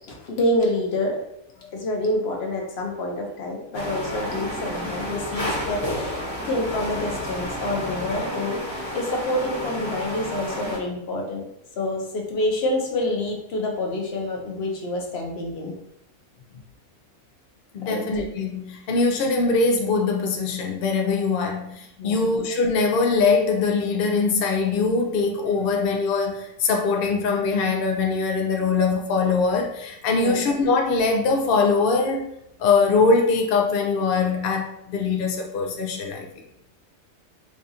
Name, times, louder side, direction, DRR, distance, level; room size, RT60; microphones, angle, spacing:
voice 1, 0.1-1.2 1.7-11.5 11.8-15.8 17.8-18.0 22.0-22.3 30.2-30.5, left 1 dB, 55° left, 1 dB, 0.9 m, -27 dB
sound 1, 3.7-10.8, equal, 25° left, 1.0 m, -31 dB
voice 2, 17.7-32.3 32.6-36.3, left 4 dB, 70° left, 1 dB, 0.5 m, -22 dB
4.7 x 2.4 x 2.7 m, 0.77 s
omnidirectional pair, 1.4 m